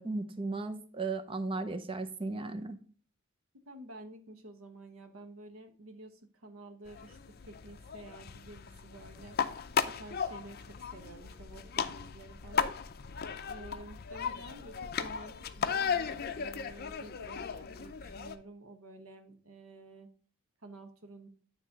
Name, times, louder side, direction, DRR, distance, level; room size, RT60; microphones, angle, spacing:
voice 1, 0.0-2.8, right 3 dB, 25° right, 9 dB, 0.6 m, -36 dB
voice 2, 3.7-9.4 9.8-12.8 13.5-20.1 20.6-21.3, right 1 dB, 90° right, 7 dB, 1.2 m, -50 dB
sound 1, 6.9-18.4, left 6 dB, 50° left, 0.5 m, -36 dB
9.5 x 3.2 x 5.2 m, 0.43 s
head